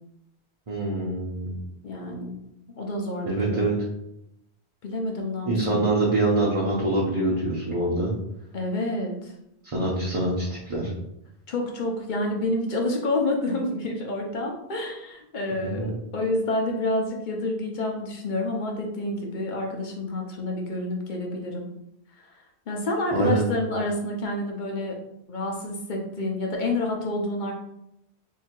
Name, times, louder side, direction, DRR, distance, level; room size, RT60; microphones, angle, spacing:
voice 1, 0.7-1.6 3.2-3.7 5.5-8.1 9.6-10.9 15.6-15.9 23.1-23.4, right 2 dB, 35° right, -5 dB, 0.7 m, -25 dB
voice 2, 1.8-2.4 2.7-3.7 4.8-5.8 8.5-9.3 11.5-21.7 22.7-25.0 25.3-27.5, left 1 dB, 50° left, 1 dB, 0.9 m, -28 dB
2.8 x 2.7 x 4.4 m, 0.80 s
omnidirectional pair, 1.1 m